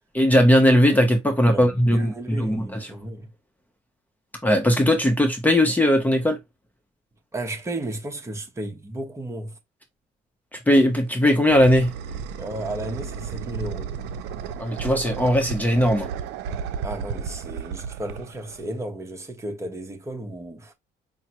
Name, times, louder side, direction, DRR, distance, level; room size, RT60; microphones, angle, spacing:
voice 1, 0.1-2.6 4.4-6.4 10.7-11.9 14.6-16.1, equal, 10° left, 0.9 m, -18 dB
voice 2, 1.5-3.3 7.3-9.6 12.4-13.9 16.8-20.7, right 1 dB, 15° right, 1.1 m, -34 dB
sound 1, 10.9-18.8, right 7 dB, 85° right, 0.6 m, -33 dB
5.5 x 2.2 x 3.0 m
cardioid pair, 110°, 17 cm